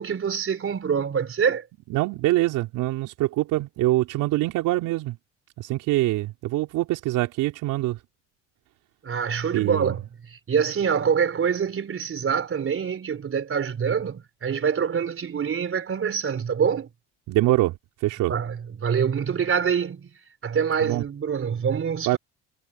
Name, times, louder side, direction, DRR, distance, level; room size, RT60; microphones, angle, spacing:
voice 1, 0.0-1.7 9.0-16.9 18.3-20.1 20.4-22.2, right 7 dB, 40° right, 4.0 m, -25 dB
voice 2, 1.9-5.2 5.6-8.0 9.5-10.0 17.3-17.7 18.0-18.3 20.8-21.0 22.1-22.2, right 17 dB, 70° right, 3.7 m, -24 dB
hypercardioid pair, 65°, 32 cm